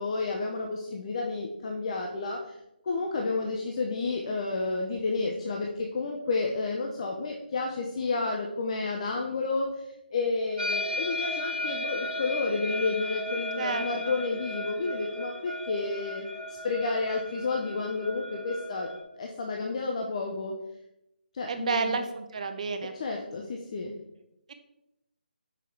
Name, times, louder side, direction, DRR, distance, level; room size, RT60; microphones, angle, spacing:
voice 1, 0.0-2.6 2.8-18.9 19.2-20.6 21.3-22.0 23.0-24.0, left 3 dB, 40° left, 1 dB, 0.6 m, -31 dB
sound 1, 10.6-19.0, left 1 dB, 90° right, 0.9 m, -35 dB
voice 2, 13.6-14.1 21.5-22.9 24.5-24.6, right 4 dB, 45° right, 7 dB, 0.7 m, -31 dB
6.1 x 4.6 x 3.3 m, 0.86 s
figure-of-eight pair, 150°, 6 cm